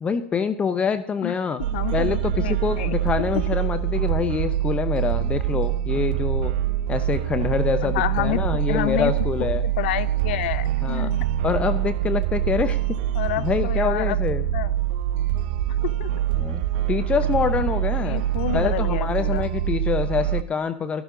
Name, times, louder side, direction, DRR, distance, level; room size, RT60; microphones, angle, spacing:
voice 1, 0.0-1.6 1.9-6.5 6.9-9.6 10.8-11.1 11.4-13.0 13.4-14.4 16.3-18.2 18.5-21.0, left 6 dB, 15° left, 11 dB, 0.7 m, -25 dB
sound 1, 1.6-20.4, right 11 dB, 55° right, 0.7 m, -25 dB
voice 2, 1.7-3.0 7.8-8.4 8.7-9.1 9.6-11.2 13.1-14.2 14.5-14.7 16.0-16.1 18.0-19.5, left 15 dB, 55° left, 16 dB, 0.7 m, -28 dB
13.0 x 12.0 x 3.8 m, 0.67 s
hypercardioid pair, 110°, 7 cm